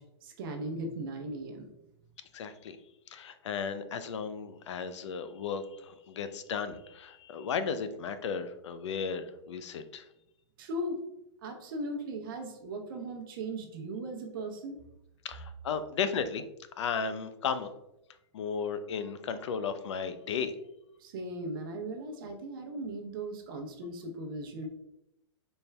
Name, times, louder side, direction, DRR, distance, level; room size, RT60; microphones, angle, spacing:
voice 1, 0.0-1.7 10.6-11.0 11.4-14.8 21.0-24.7, right 1 dB, 50° right, 4 dB, 0.7 m, -38 dB
voice 2, 2.3-2.8 3.1-10.1 15.2-16.4 16.8-17.7 18.3-20.5, left 6 dB, 85° left, 11 dB, 0.5 m, -35 dB
4.4 x 3.3 x 3.3 m, 0.86 s
hypercardioid pair, 155°, 15 cm